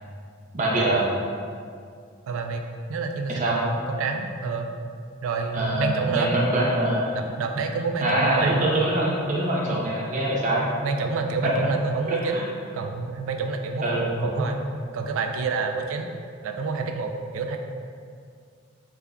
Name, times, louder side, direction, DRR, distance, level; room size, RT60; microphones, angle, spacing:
voice 1, 0.5-1.1 3.3-3.6 5.5-7.1 8.0-10.7 11.4-11.5 12.1-12.4 13.8-14.4, right 1 dB, 40° right, -4 dB, 0.6 m, -24 dB
voice 2, 2.3-2.6 2.9-4.7 5.2-6.3 7.1-8.7 10.8-12.4 12.7-14.6 14.9-16.1 16.4-17.6, right 4 dB, 85° right, 5 dB, 0.3 m, -28 dB
3.7 x 3.5 x 2.2 m, 2.2 s
head